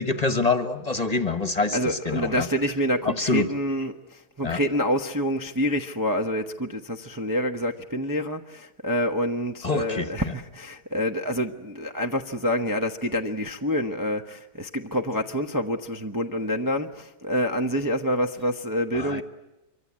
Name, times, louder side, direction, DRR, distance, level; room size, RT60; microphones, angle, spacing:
voice 1, 0.0-2.5 3.0-3.5 4.4-4.6 9.6-10.3 18.9-19.2, left 3 dB, 25° left, 1.4 m, -26 dB
voice 2, 1.7-19.2, equal, 15° right, 0.9 m, -27 dB
25.5 x 24.5 x 8.7 m
omnidirectional pair, 1.6 m